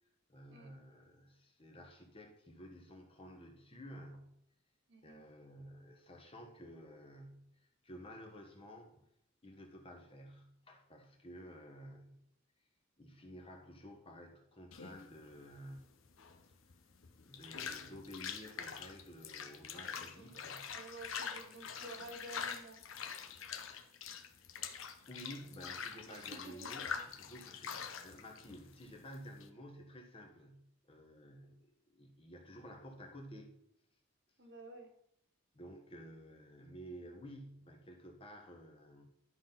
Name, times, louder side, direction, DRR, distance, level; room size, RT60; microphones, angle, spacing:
voice 1, 0.3-4.4 5.0-9.1 9.4-12.2 13.0-15.9 17.2-20.7 25.1-26.8 27.1-33.6 35.5-39.1, equal, 25° left, 3 dB, 1.3 m, -52 dB
voice 2, 4.9-5.2 20.2-20.4 20.7-22.8 26.1-26.7 34.4-34.9, right 2 dB, 60° right, 4 dB, 1.3 m, -51 dB
sound 1, 14.7-29.5, left 6 dB, 75° left, 0.8 m, -45 dB
11.5 x 4.0 x 5.8 m, 0.77 s
head